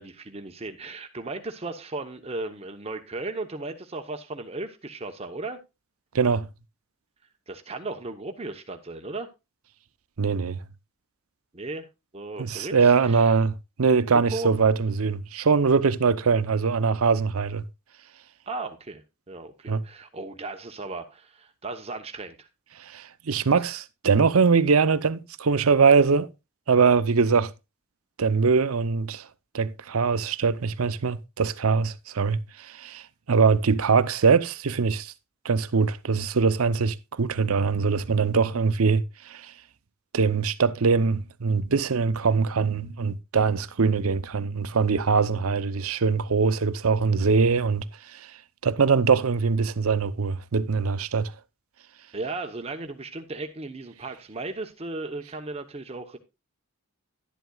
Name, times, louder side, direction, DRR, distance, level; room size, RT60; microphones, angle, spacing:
voice 1, 0.0-5.6 7.5-9.3 11.5-11.9 12.1-12.8 13.0-13.3 14.3-14.5 18.5-22.5 52.1-56.2, right 2 dB, 30° right, 0.9 m, -36 dB
voice 2, 6.1-6.5 10.2-10.6 12.4-17.6 19.7-19.8 22.8-26.3 26.7-27.5 28.2-29.3 29.5-35.1 35.4-39.5 40.1-48.3 48.6-51.3, right 5 dB, 90° right, 0.7 m, -22 dB
11.5 x 11.0 x 2.3 m
head